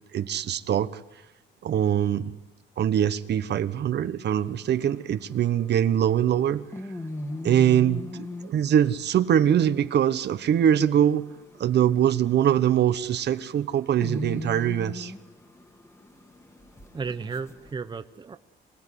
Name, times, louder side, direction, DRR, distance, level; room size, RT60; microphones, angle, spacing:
voice 1, 0.1-0.9 1.6-2.3 2.8-6.6 7.4-11.3 11.6-15.1, right 10 dB, 60° right, 12 dB, 1.2 m, -23 dB
sound 1, 4.3-17.7, left 1 dB, 15° left, 1.9 m, -40 dB
voice 2, 16.9-18.4, right 5 dB, 25° right, 10 dB, 0.9 m, -34 dB
26.0 x 17.5 x 9.9 m, 0.99 s
cardioid pair, 140°, 20 cm